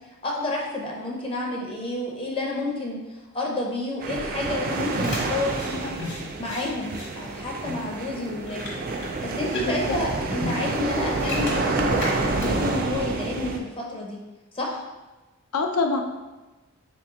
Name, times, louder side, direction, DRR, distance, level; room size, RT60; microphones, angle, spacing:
voice 1, 0.2-5.9 6.4-8.7 9.2-14.2 14.5-14.8, left 2 dB, 25° left, -2 dB, 0.5 m, -30 dB
sound 1, 4.0-13.6, right 3 dB, 40° right, 0.4 m, -28 dB
sound 2, 4.7-12.8, left 2 dB, 50° left, 1.0 m, -38 dB
voice 2, 9.5-10.0 15.5-16.0, left 4 dB, 80° left, 5 dB, 0.4 m, -25 dB
4.1 x 3.0 x 3.5 m, 1.1 s
head